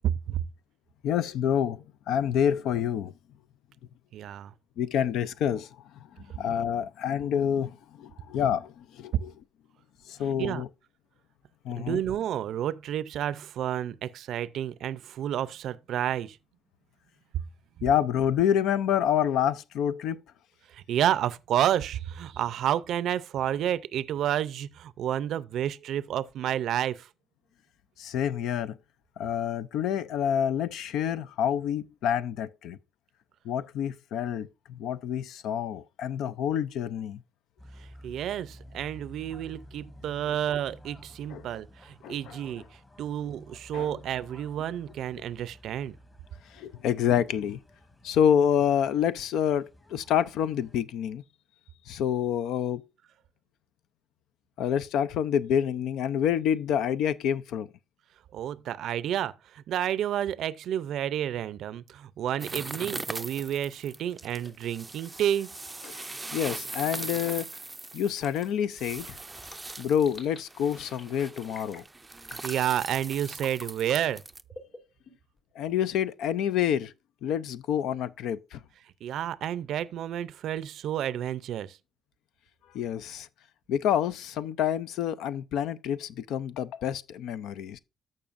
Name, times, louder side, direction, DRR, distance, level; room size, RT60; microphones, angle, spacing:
voice 1, 1.0-3.1 4.8-5.7 6.2-9.3 10.1-10.7 11.6-12.0 17.8-20.2 28.0-28.8 29.2-32.8 33.4-37.2 41.3-41.5 42.0-42.3 43.7-44.0 46.5-47.6 48.0-51.2 51.9-52.8 54.6-57.7 65.8-66.0 66.3-67.5 67.9-69.2 69.8-71.8 75.6-76.9 77.2-78.6 82.7-83.3 83.7-87.8, left 9 dB, 85° left, 0.4 m, -28 dB
voice 2, 4.1-4.5 10.4-10.6 11.8-16.4 20.7-27.1 38.0-42.6 43.0-45.9 58.3-65.5 72.3-74.2 79.0-81.8, right 10 dB, 75° right, 0.4 m, -30 dB
sound 1, 37.6-50.8, left 1 dB, 25° left, 1.8 m, -52 dB
sound 2, 62.4-74.4, right 2 dB, 20° right, 0.4 m, -40 dB
sound 3, 63.1-63.4 64.4-64.7 65.7-66.1 67.2-67.6 68.1-68.5 69.4-70.4 70.7-71.1 71.5-71.9 72.2-72.6 73.4-73.7 74.5-75.4, left 2 dB, 45° left, 3.0 m, -48 dB
14.0 x 5.4 x 2.5 m
cardioid pair, 90°, 0 cm